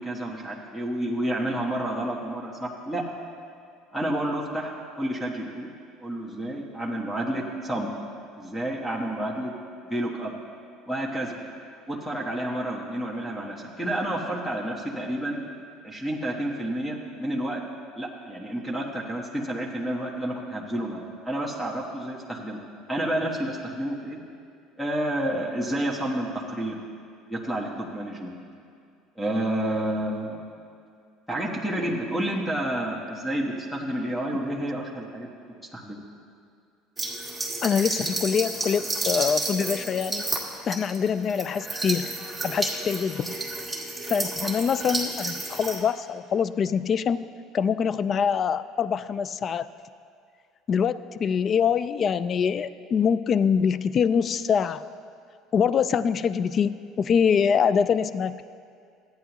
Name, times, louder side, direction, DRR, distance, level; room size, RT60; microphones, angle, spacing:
voice 1, 0.0-3.0 3.9-5.7 6.0-7.9 8.4-9.5 9.8-10.3 10.9-11.4 11.9-15.4 15.8-17.6 17.9-22.6 22.9-24.2 24.8-26.8 27.3-28.4 29.2-30.4 31.3-35.3 35.7-36.0, right 1 dB, 10° left, -2 dB, 1.3 m, -30 dB
sound 1, 37.0-45.8, right 2 dB, 10° right, 1.8 m, -31 dB
voice 2, 37.6-40.3 40.7-42.1 42.4-43.4 44.1-47.2 47.5-49.7 50.7-54.8 55.5-58.4, left 7 dB, 40° left, 15 dB, 0.3 m, -24 dB
13.5 x 9.2 x 3.0 m, 2.3 s
supercardioid pair, 90°, 0 cm